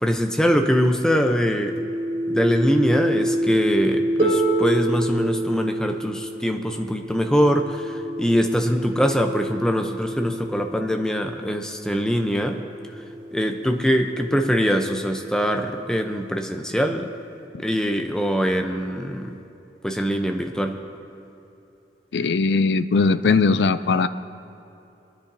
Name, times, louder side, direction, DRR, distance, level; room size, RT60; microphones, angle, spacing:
voice 1, 0.0-1.8 2.3-12.6 13.3-17.1 17.6-19.4 19.8-20.8, equal, 5° left, 4 dB, 0.6 m, -23 dB
sound 1, 1.2-11.5 12.4-16.2, equal, 20° right, 2.8 m, -29 dB
Harp, 4.2-10.0 11.0-11.1, right 3 dB, 50° right, 2.7 m, -30 dB
voice 2, 22.1-24.1, left 4 dB, 80° left, 12 dB, 0.4 m, -19 dB
26.0 x 10.0 x 2.7 m, 2.8 s
head